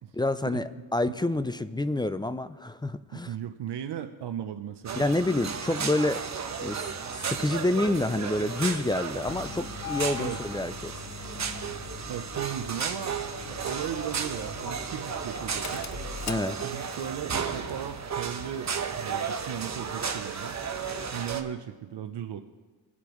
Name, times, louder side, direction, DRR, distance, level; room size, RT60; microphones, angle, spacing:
voice 1, 0.1-3.3 4.9-6.2 6.6-6.8 7.2-10.9 16.3-16.6, left 2 dB, 10° left, 12 dB, 0.4 m, -28 dB
voice 2, 3.1-5.0 10.2-10.4 12.1-13.2 13.5-15.8 16.6-20.6 21.1-22.4, right 10 dB, 65° right, 7 dB, 0.7 m, -37 dB
sound 1, 4.8-21.4, right 6 dB, 40° right, 1.0 m, -34 dB
Engine starting, 9.2-17.1, left 7 dB, 40° left, 0.7 m, -42 dB
22.5 x 8.3 x 3.1 m, 1.3 s
cardioid pair, 100°, 44 cm